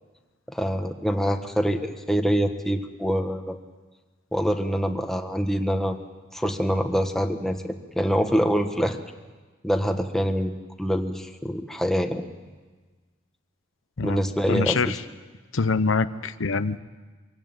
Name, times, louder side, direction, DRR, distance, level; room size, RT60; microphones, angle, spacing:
voice 1, 0.5-3.6 4.3-6.0 6.3-9.0 9.6-10.5 10.8-12.2 14.0-14.9, equal, ahead, 5 dB, 1.3 m, -25 dB
voice 2, 14.5-15.0 15.5-16.8, left 4 dB, 85° left, 12 dB, 0.8 m, -24 dB
24.0 x 17.0 x 9.1 m, 1.3 s
head